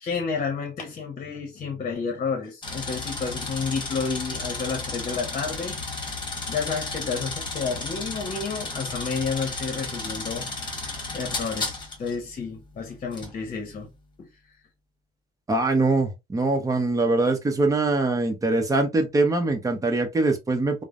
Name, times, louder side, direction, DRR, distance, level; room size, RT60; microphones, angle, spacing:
voice 1, 0.0-6.0 6.5-10.5 11.1-13.9 14.2-14.3, left 5 dB, 45° left, 0.9 m, -30 dB
sound 1, 2.6-12.1 13.1-13.3, left 3 dB, 25° left, 1.3 m, -33 dB
voice 2, 15.5-20.8, right 2 dB, 20° right, 0.8 m, -23 dB
3.1 x 2.1 x 2.5 m
cardioid pair, 110°, 17 cm